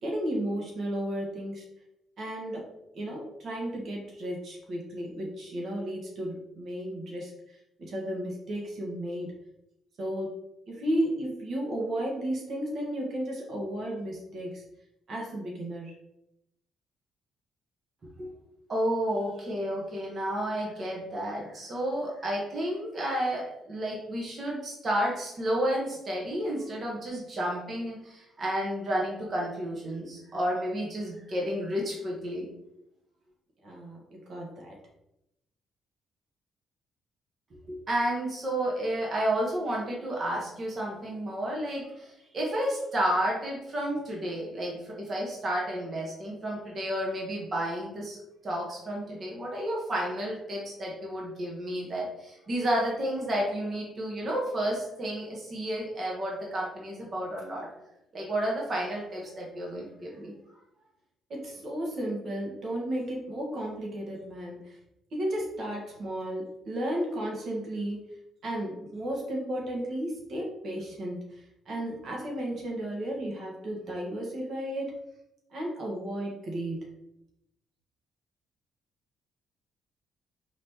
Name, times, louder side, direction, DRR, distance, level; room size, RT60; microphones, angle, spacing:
voice 1, 0.0-1.6 2.2-2.7 2.9-9.3 10.0-10.4 10.7-14.6 15.1-16.0 33.6-34.8 61.3-64.8 65.1-68.0 68.4-75.0 75.5-76.9, right 1 dB, 60° right, -2 dB, 1.4 m, -34 dB
voice 2, 18.7-32.5 37.7-48.2 48.4-57.7 58.1-60.3, right 1 dB, 40° right, -3 dB, 1.3 m, -31 dB
4.8 x 3.6 x 2.9 m, 0.85 s
cardioid pair, 90°, 0 cm